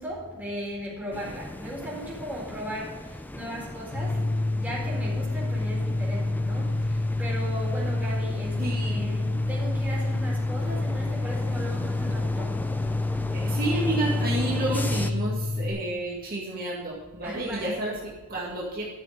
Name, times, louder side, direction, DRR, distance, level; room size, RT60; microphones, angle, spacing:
voice 1, 0.0-4.3 4.6-12.6 17.2-17.7, equal, 10° right, -5 dB, 4.3 m, -37 dB
sound 1, 1.1-15.1, left 1 dB, 10° left, 0.6 m, -38 dB
sound 2, 3.9-15.7, left 2 dB, 70° left, 4.0 m, -28 dB
voice 2, 8.6-9.1 13.3-18.8, right 2 dB, 40° right, -4 dB, 2.2 m, -30 dB
12.5 x 6.8 x 6.7 m, 1.2 s
head